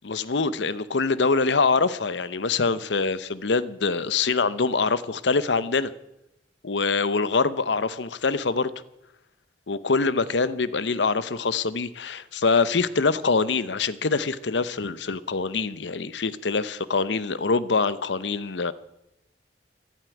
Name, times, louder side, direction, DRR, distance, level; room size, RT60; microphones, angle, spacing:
voice 1, 0.0-5.9 6.6-8.7 9.7-18.7, left 4 dB, 80° left, 0.8 m, -24 dB
14.0 x 11.5 x 9.2 m
head